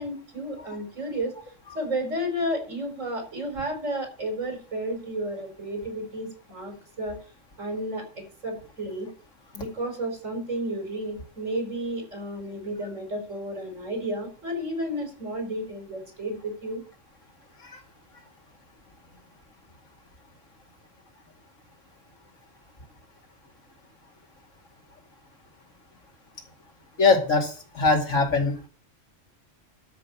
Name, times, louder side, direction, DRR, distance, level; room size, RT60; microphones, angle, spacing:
voice 1, 0.0-1.3 1.7-7.2 7.6-9.1 9.5-16.8, right 1 dB, 90° right, 3 dB, 5.2 m, -32 dB
voice 2, 27.0-28.7, left 4 dB, 90° left, 2 dB, 2.7 m, -22 dB
13.0 x 6.1 x 7.1 m, 0.37 s
omnidirectional pair, 1.3 m